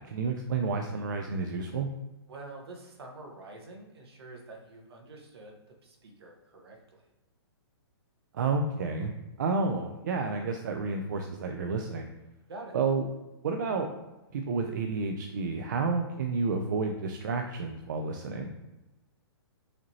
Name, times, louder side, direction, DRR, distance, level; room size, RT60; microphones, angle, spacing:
voice 1, 0.0-1.9 8.3-9.1 9.4-12.1 12.7-13.1 13.4-13.9 14.3-18.5, right 4 dB, 45° right, 4 dB, 0.4 m, -30 dB
voice 2, 2.3-7.1 12.5-12.7, right 2 dB, 65° right, 1 dB, 1.1 m, -47 dB
4.9 x 2.8 x 3.0 m, 1.0 s
hypercardioid pair, 170°, 14 cm